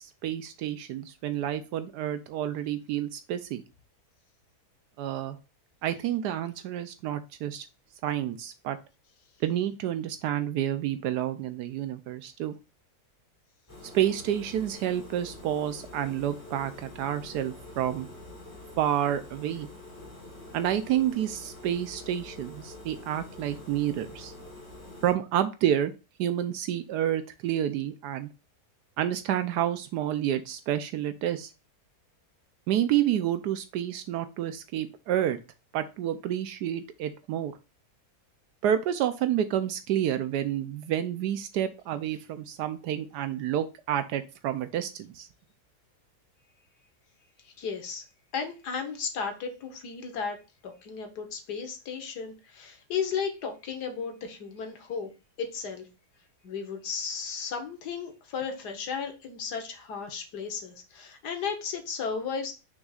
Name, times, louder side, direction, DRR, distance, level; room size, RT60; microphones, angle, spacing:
voice 1, 0.0-3.6 5.0-5.4 5.8-7.6 8.0-8.8 9.4-12.5 13.9-18.1 18.8-19.7 20.5-24.3 25.0-25.9 26.2-28.3 29.0-31.5 32.7-35.4 35.7-37.5 38.6-45.3, right 11 dB, 80° right, 10 dB, 1.2 m, -29 dB
sound 1, 13.7-25.1, left 2 dB, 10° left, 2.5 m, -46 dB
voice 2, 47.4-48.0 48.3-50.4 50.6-55.1 55.4-55.9 56.4-62.6, left 6 dB, 80° left, 5 dB, 1.7 m, -34 dB
6.3 x 6.2 x 2.4 m, 0.29 s
omnidirectional pair, 1.7 m